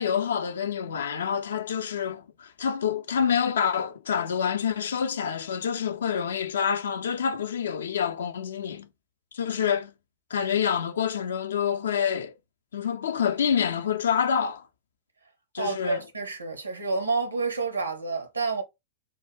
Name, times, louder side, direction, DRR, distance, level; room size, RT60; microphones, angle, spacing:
voice 1, 0.0-8.9 9.3-9.9 10.3-12.3 12.7-14.7 15.5-16.0, left 7 dB, 65° left, 0.4 m, -27 dB
voice 2, 15.6-18.6, right 4 dB, 80° right, 0.8 m, -29 dB
3.7 x 2.2 x 3.2 m
figure-of-eight pair, 90°, 0 cm